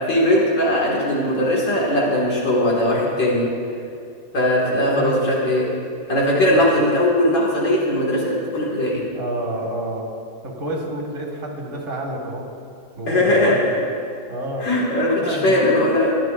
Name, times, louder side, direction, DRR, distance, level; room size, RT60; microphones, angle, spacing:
voice 1, 0.1-3.5 4.3-5.7 6.1-9.0 13.1-13.6 14.6-16.2, left 1 dB, 85° left, -5 dB, 3.0 m, -19 dB
voice 2, 4.6-5.2 6.5-6.6 9.1-10.0 10.4-12.4 13.0-13.7 14.3-14.7 15.2-15.8, right 1 dB, 45° right, -1 dB, 2.1 m, -29 dB
20.0 x 10.5 x 2.6 m, 2.4 s
omnidirectional pair, 1.9 m